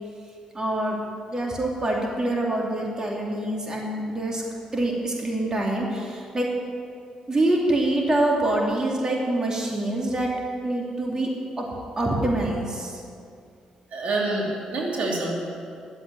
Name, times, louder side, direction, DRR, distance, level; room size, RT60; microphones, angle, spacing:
voice 1, 0.5-1.0 1.3-4.4 4.7-6.5 7.3-10.3 10.6-11.3 11.6-11.7 12.0-13.0, right 1 dB, 30° right, -2 dB, 2.8 m, -25 dB
voice 2, 13.9-15.3, right 2 dB, 65° right, -2 dB, 2.9 m, -27 dB
12.5 x 8.0 x 9.3 m, 2.3 s
cardioid pair, 65°, 2 cm